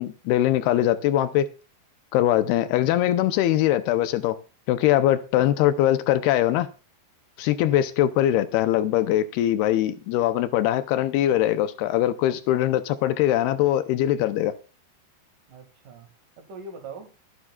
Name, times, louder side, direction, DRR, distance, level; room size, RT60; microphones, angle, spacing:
voice 1, 0.0-1.5 2.1-4.4 4.7-6.7 7.4-14.6, left 13 dB, 80° left, 2.6 m, -22 dB
voice 2, 6.0-6.4 7.4-8.1 15.5-16.1 16.4-17.1, right 4 dB, 55° right, 3.4 m, -43 dB
25.0 x 9.8 x 2.4 m
omnidirectional pair, 4.7 m